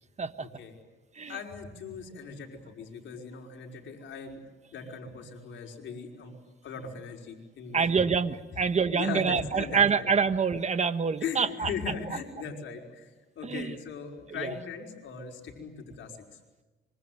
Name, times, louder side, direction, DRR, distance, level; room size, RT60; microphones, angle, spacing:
voice 1, 0.4-0.7 1.3-4.4 4.7-6.3 6.6-7.8 8.9-10.1 11.2-16.2, left 5 dB, 70° left, 1 dB, 5.3 m, -39 dB
voice 2, 7.7-11.7 13.4-13.7 14.4-14.5, right 6 dB, 35° right, 11 dB, 1.5 m, -26 dB
26.0 x 24.0 x 9.5 m, 1.2 s
cardioid pair, 90°, 20 cm